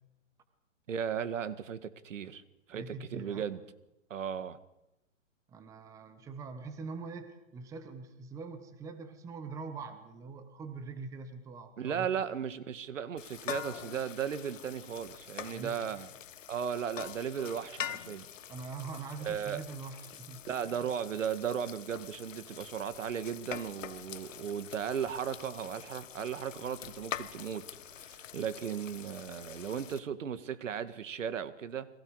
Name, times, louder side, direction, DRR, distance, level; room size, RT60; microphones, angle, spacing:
voice 1, 0.9-2.4 2.7-3.6 4.1-4.6 11.8-16.1 16.5-18.3 19.3-19.6 20.5-27.7 28.0-31.9, right 8 dB, 70° right, 1.8 m, -36 dB
voice 2, 2.7-3.5 5.5-12.2 15.5-15.8 18.5-20.9, right 4 dB, 10° right, 1.0 m, -44 dB
sound 1, 13.2-30.0, left 9 dB, 70° left, 1.3 m, -45 dB
29.0 x 22.0 x 4.9 m
hypercardioid pair, 155°, 39 cm